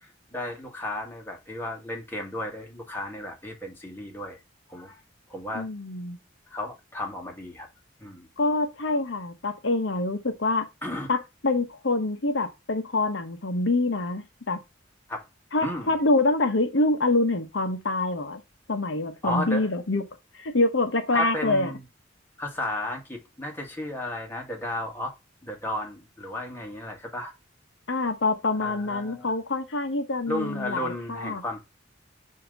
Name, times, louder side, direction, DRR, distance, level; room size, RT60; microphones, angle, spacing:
voice 1, 0.0-4.4 4.7-5.0 5.3-5.7 6.5-7.7 8.0-8.3 10.8-11.1 15.1-15.2 15.6-16.0 19.2-19.7 21.1-21.8 22.4-25.1 25.4-27.3 28.6-29.3 30.3-31.6, left 1 dB, 10° left, 1.5 m, -34 dB
voice 2, 5.5-6.2 8.4-10.7 11.1-14.6 15.5-18.4 18.7-20.0 20.4-21.7 27.9-31.4, left 2 dB, 75° left, 1.0 m, -26 dB
7.1 x 2.9 x 5.1 m
head